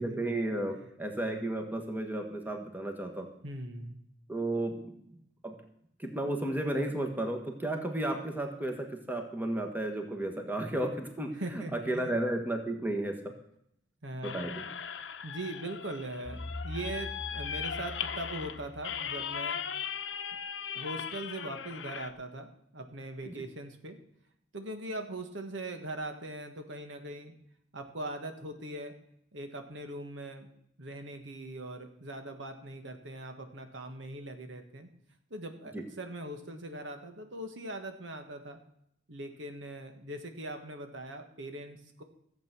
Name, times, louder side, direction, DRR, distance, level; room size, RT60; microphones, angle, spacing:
voice 1, 0.0-3.3 4.3-5.6 6.0-13.3 14.2-14.6 23.2-23.3 35.7-35.8, right 1 dB, 10° right, 3 dB, 1.5 m, -33 dB
voice 2, 3.4-4.0 11.4-12.1 14.0-14.5 15.2-19.6 20.7-24.0 24.5-27.3 27.7-28.9 29.3-30.5 30.8-34.9 35.3-38.6 39.1-42.0, right 1 dB, 80° right, 6 dB, 1.5 m, -41 dB
sound 1, 14.2-22.1, left 7 dB, 70° left, 0.8 m, -38 dB
sound 2, 16.3-19.4, left 2 dB, 15° left, 0.8 m, -43 dB
14.5 x 8.0 x 6.1 m, 0.72 s
head